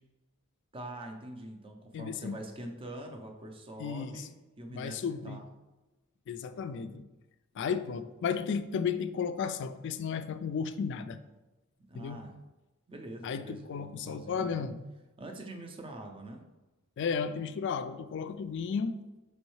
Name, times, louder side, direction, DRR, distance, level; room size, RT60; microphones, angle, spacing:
voice 1, 0.7-5.5 11.9-12.3 12.9-14.7 15.2-16.4, right 1 dB, 25° right, 3 dB, 0.5 m, -44 dB
voice 2, 1.9-2.4 3.8-4.3 4.7-5.4 6.3-7.0 7.6-11.2 11.9-12.2 13.2-14.8 17.0-19.0, left 6 dB, 55° left, 11 dB, 0.3 m, -34 dB
5.3 x 3.1 x 3.1 m, 1.1 s
head